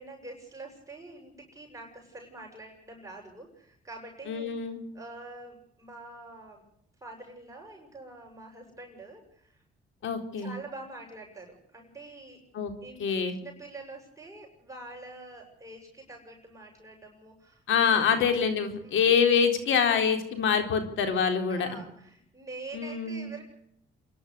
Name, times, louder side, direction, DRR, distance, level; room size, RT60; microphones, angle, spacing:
voice 1, 0.0-6.6 7.0-9.6 10.4-12.4 12.8-17.6 17.9-18.1 18.8-19.1 21.5-23.4, right 2 dB, 15° right, 0 dB, 7.4 m, -46 dB
voice 2, 4.3-4.8 10.0-10.5 12.5-12.7 13.0-13.4 17.7-21.7 22.7-23.3, left 6 dB, 75° left, 7 dB, 4.0 m, -25 dB
28.0 x 11.5 x 8.2 m, 0.72 s
cardioid pair, 90°, 20 cm